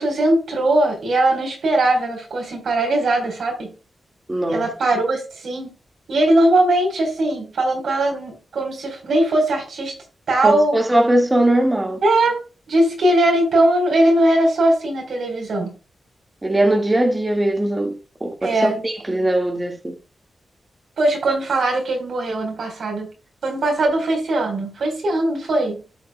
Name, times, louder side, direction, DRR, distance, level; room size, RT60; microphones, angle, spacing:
voice 1, 0.0-3.7 4.5-5.7 6.1-10.0 10.3-10.7 12.0-12.4 12.7-15.7 18.4-18.8 21.0-23.1 23.4-25.8, right 1 dB, 75° right, 2 dB, 4.1 m, -20 dB
voice 2, 4.3-4.7 10.4-12.0 16.4-19.9, right 1 dB, 20° right, 2 dB, 1.8 m, -20 dB
13.5 x 6.2 x 2.2 m, 0.32 s
wide cardioid pair, 95°, 0 cm